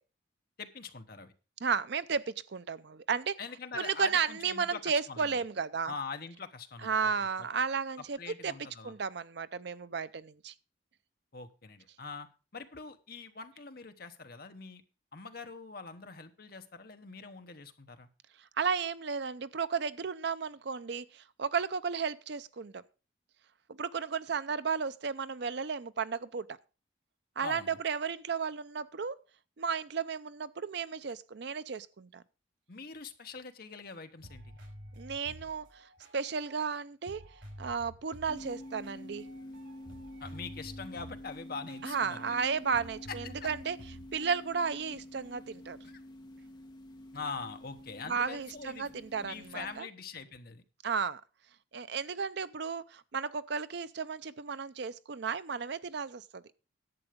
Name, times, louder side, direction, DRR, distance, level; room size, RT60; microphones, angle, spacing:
voice 1, 0.6-1.3 3.4-5.3 5.8-7.1 8.0-9.0 11.3-12.3 12.5-14.8 15.1-18.1 27.4-27.8 32.7-34.6 40.2-42.3 43.2-43.5 45.8-46.0 47.1-48.9 49.2-50.6, left 4 dB, 50° left, 1.1 m, -43 dB
voice 2, 1.6-3.4 3.8-5.9 6.8-8.2 8.4-8.5 8.8-10.5 18.6-22.8 23.7-26.6 27.4-29.2 29.6-32.2 35.0-37.2 37.6-39.3 41.8-43.8 44.1-45.8 48.1-49.9 50.8-51.2 51.7-56.4, right 5 dB, 55° right, 0.5 m, -33 dB
sound 1, 33.9-34.0 34.2-36.8 37.1-42.4 42.7-44.3, right 1 dB, 75° right, 5.8 m, -51 dB
sound 2, 38.3-49.8, left 1 dB, 20° left, 1.1 m, -48 dB
11.0 x 7.9 x 5.1 m
head